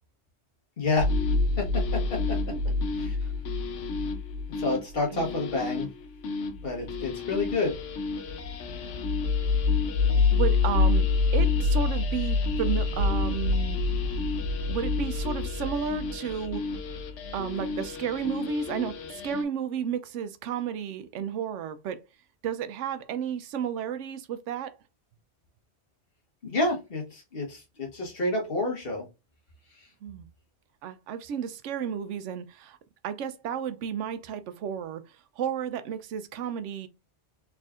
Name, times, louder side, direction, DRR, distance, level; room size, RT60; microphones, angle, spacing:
voice 1, 0.8-1.1 1.6-2.4 3.0-3.2 4.6-5.9 6.6-7.7 26.4-29.0, left 3 dB, 55° left, 1.5 m, -29 dB
sound 1, 1.0-19.4, left 4 dB, 85° left, 1.0 m, -27 dB
voice 2, 5.1-5.5 10.1-11.1 11.3-13.8 14.6-16.6 17.3-22.0 22.4-24.7 30.0-30.3 30.8-32.8 33.0-36.9, right 8 dB, 85° right, 0.9 m, -32 dB
4.1 x 3.5 x 2.4 m
omnidirectional pair, 1.2 m